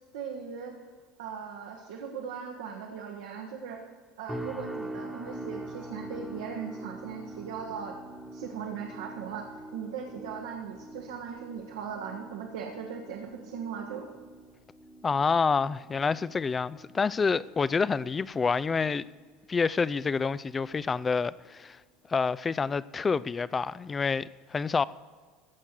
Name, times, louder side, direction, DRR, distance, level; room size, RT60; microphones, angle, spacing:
voice 1, 0.1-0.7 1.2-3.8 4.2-7.9 8.3-14.1, right 7 dB, 85° right, 1.3 m, -39 dB
sound 1, 4.3-19.5 19.8-20.2 20.7-20.9, right 1 dB, ahead, 1.2 m, -44 dB
voice 2, 15.0-19.0 19.5-21.8 22.1-24.8, left 5 dB, 25° left, 0.4 m, -28 dB
15.0 x 5.8 x 6.5 m
hypercardioid pair, 90°, 0 cm